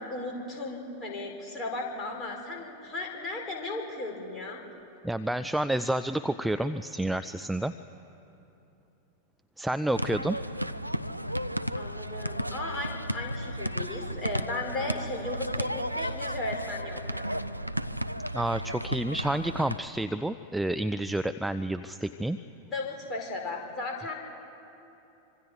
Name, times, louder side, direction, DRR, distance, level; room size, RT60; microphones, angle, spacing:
voice 1, 0.0-4.6 11.8-17.3 22.4-24.1, left 2 dB, 25° left, 0 dB, 4.7 m, -36 dB
voice 2, 5.0-7.7 9.6-10.4 18.3-22.4, right 1 dB, 5° right, 11 dB, 0.5 m, -29 dB
sound 1, 9.9-19.8, equal, 90° right, 0.5 m, -33 dB
26.0 x 24.5 x 5.0 m, 3.0 s
figure-of-eight pair, 90°, 0 cm